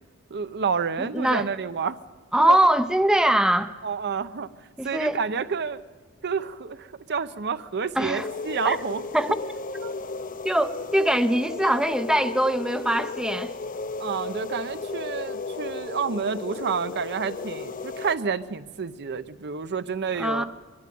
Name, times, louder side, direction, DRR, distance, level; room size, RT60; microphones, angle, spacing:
voice 1, 0.3-2.0 2.4-2.6 3.8-4.5 4.8-5.8 6.2-9.1 9.8-9.9 14.0-20.4, right 5 dB, 50° right, 0.7 m, -29 dB
voice 2, 1.0-1.5 2.3-3.7 4.8-5.2 8.0-8.3 8.6-8.8 9.1-9.4 10.4-13.5 20.2-20.4, right 1 dB, 5° right, 0.5 m, -22 dB
sound 1, 8.1-18.2, left 3 dB, 40° left, 0.7 m, -34 dB
22.5 x 13.0 x 9.3 m
head